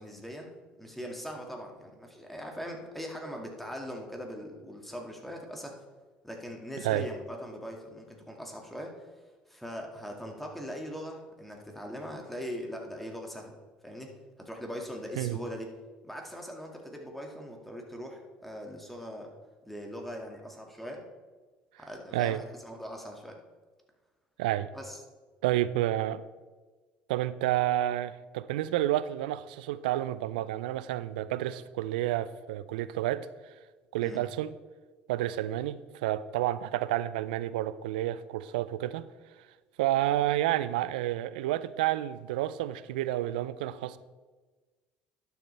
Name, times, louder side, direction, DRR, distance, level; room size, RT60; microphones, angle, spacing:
voice 1, 0.0-5.8 6.2-9.0 9.5-13.6 13.8-15.7 16.0-19.3 19.7-21.1 21.8-23.4 24.7-25.0 34.0-34.2, equal, 5° left, 1 dB, 2.1 m, -41 dB
voice 2, 24.4-24.7 25.4-26.3 27.1-33.3 33.9-34.5 35.1-39.1 39.8-44.0, right 14 dB, 85° right, 16 dB, 0.4 m, -30 dB
11.5 x 7.2 x 3.4 m, 1.3 s
hypercardioid pair, 70°, 5 cm